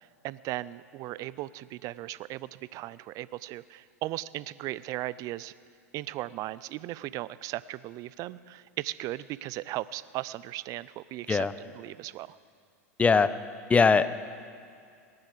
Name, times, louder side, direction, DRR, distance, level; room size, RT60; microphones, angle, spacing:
voice 1, 0.2-5.5 5.9-12.4, right 16 dB, 45° right, 18 dB, 0.5 m, -37 dB
voice 2, 13.0-13.3 13.7-14.1, left 5 dB, 15° left, 14 dB, 0.7 m, -20 dB
19.5 x 9.6 x 6.8 m, 2.2 s
hypercardioid pair, 95°, 8 cm